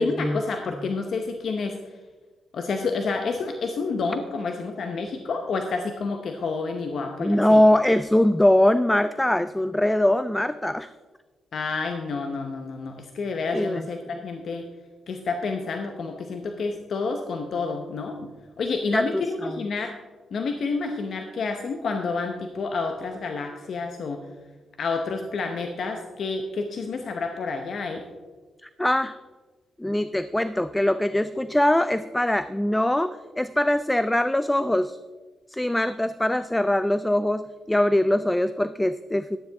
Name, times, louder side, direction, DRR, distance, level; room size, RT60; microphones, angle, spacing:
voice 1, 0.0-1.9 2.5-7.6 11.5-14.7 15.1-19.9 20.3-24.2 24.8-28.1, left 4 dB, 60° left, 4 dB, 0.9 m, -29 dB
voice 2, 7.2-10.9 13.5-13.9 18.9-19.6 28.6-29.2 29.8-35.0 35.5-39.4, left 1 dB, 10° left, 12 dB, 0.3 m, -22 dB
12.5 x 10.5 x 3.5 m, 1.3 s
cardioid pair, 100°, 0 cm